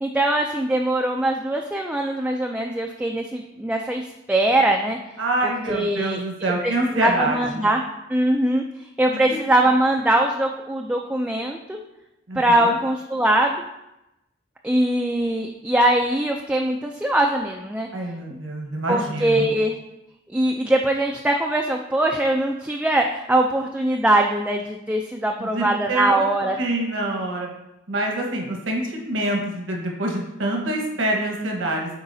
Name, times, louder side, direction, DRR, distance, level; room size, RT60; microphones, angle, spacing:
voice 1, 0.0-4.0 4.3-5.0 5.4-6.2 6.6-7.8 8.1-8.6 9.0-11.8 12.3-13.6 14.6-17.9 18.9-19.8 20.3-26.6, right 1 dB, 5° right, 1 dB, 0.3 m, -22 dB
voice 2, 5.2-7.7 9.1-9.4 12.3-12.8 17.9-19.5 25.4-26.2 26.6-27.5 27.9-32.0, right 1 dB, 80° right, 0 dB, 1.2 m, -26 dB
8.1 x 4.7 x 2.7 m, 0.91 s
head